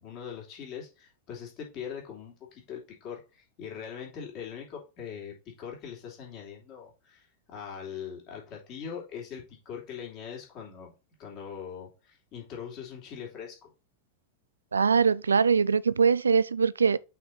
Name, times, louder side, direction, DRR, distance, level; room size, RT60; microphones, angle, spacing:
voice 1, 0.0-10.9 11.2-13.7, left 7 dB, 40° left, 2.9 m, -41 dB
voice 2, 14.7-17.0, right 5 dB, 75° right, 0.3 m, -22 dB
5.9 x 4.6 x 4.1 m
figure-of-eight pair, 90°, 0 cm